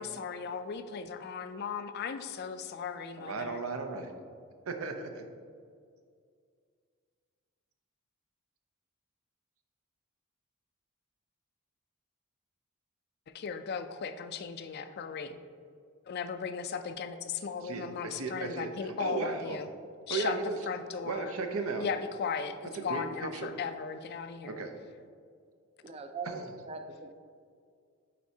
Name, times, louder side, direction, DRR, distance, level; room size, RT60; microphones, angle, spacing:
voice 1, 0.0-3.6 13.3-15.4 16.1-19.7 20.1-20.4 20.7-21.3 21.8-24.6, left 6 dB, 50° left, 9 dB, 0.4 m, -37 dB
voice 2, 3.2-4.1 4.7-5.2 17.6-19.6 20.1-20.6 21.0-21.9 22.7-23.5 24.5-24.7 26.2-26.5, right 4 dB, 80° right, 6 dB, 0.6 m, -35 dB
voice 3, 25.8-27.1, right 4 dB, 30° right, 7 dB, 0.4 m, -41 dB
9.2 x 4.3 x 2.8 m, 2.2 s
head